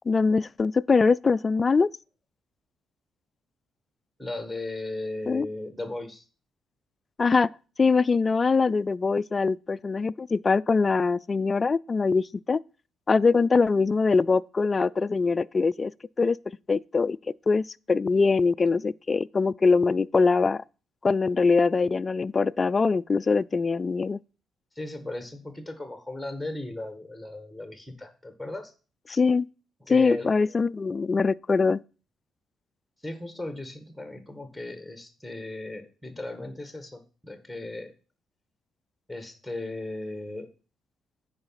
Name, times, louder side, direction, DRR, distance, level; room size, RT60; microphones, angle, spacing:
voice 1, 0.1-1.9 5.3-5.5 7.2-7.5 7.8-12.6 13.1-15.9 16.2-16.4 16.7-17.2 17.5-20.6 21.0-24.2 29.1-29.5 29.9-31.8, left 4 dB, 30° left, 0.3 m, -23 dB
voice 2, 4.2-6.3 24.8-28.7 29.8-30.3 33.0-37.9 39.1-40.5, left 2 dB, ahead, 1.8 m, -36 dB
9.5 x 4.8 x 5.8 m
cardioid pair, 90°, 0 cm